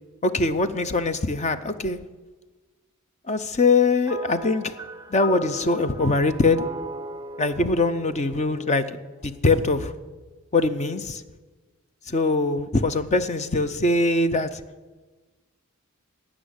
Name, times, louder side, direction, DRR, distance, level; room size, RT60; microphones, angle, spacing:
voice 1, 0.2-2.0 3.3-4.7 5.1-6.6 7.4-8.8 9.2-9.9 10.5-11.2 12.1-14.6, left 3 dB, 30° left, 11 dB, 0.6 m, -22 dB
sound 1, 4.1-9.6, right 1 dB, 15° right, 0.6 m, -37 dB
17.5 x 6.2 x 9.6 m, 1.3 s
head